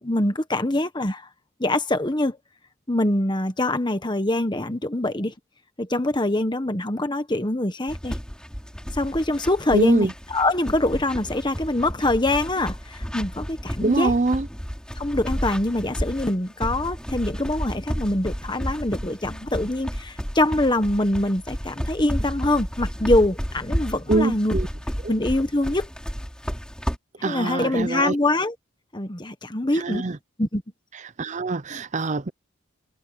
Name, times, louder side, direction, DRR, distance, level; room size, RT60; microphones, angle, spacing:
voice 1, 0.0-1.3 1.6-2.4 2.9-5.3 5.8-8.1 8.9-14.1 15.0-24.5 25.1-25.9 27.2-28.5 28.9-30.0 30.4-30.6, left 1 dB, 20° left, 1.3 m, -24 dB
sound 1, 7.9-27.0, equal, 5° left, 5.8 m, -32 dB
voice 2, 9.7-10.1 13.8-14.5 24.1-24.7 25.0-25.1 27.2-28.2 29.7-30.2 31.2-32.3, right 3 dB, 35° right, 0.6 m, -23 dB
head